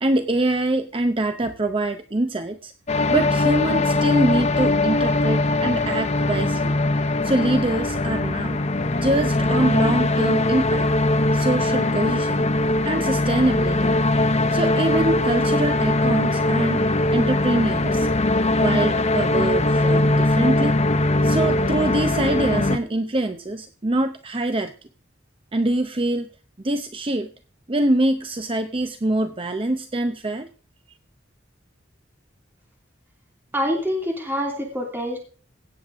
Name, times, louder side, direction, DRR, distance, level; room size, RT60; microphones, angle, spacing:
voice 1, 0.0-2.7 3.1-6.7 7.2-8.6 8.9-10.9 11.3-12.5 12.8-13.9 14.5-16.9 17.1-18.1 18.5-20.8 21.2-24.7 25.5-26.3 26.6-27.3 27.7-30.5, right 1 dB, 30° right, 8 dB, 0.7 m, -24 dB
sound 1, 2.9-22.8, left 2 dB, 35° left, 0.8 m, -21 dB
voice 2, 33.5-35.2, equal, 10° right, 0 dB, 2.9 m, -25 dB
16.5 x 7.8 x 3.6 m, 0.38 s
head